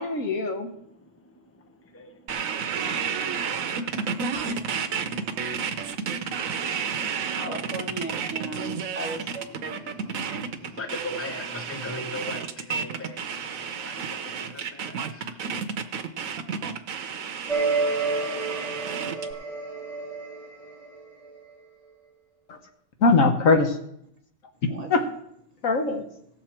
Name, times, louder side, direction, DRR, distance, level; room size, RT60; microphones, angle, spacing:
voice 1, 0.0-0.7 22.5-22.6 23.0-23.8 24.9-25.0 25.6-26.1, left 3 dB, 80° left, 1.5 m, -21 dB
voice 2, 0.8-7.5 8.8-9.0 9.4-15.4, left 2 dB, 10° left, 0.9 m, -42 dB
sound 1, 2.3-19.3, right 6 dB, 85° right, 1.2 m, -31 dB
voice 3, 4.0-5.4 7.3-9.5 24.7-24.9, right 2 dB, 30° right, 1.4 m, -37 dB
sound 2, 17.5-21.4, right 4 dB, 50° left, 3.2 m, -29 dB
17.0 x 6.9 x 4.4 m
omnidirectional pair, 1.4 m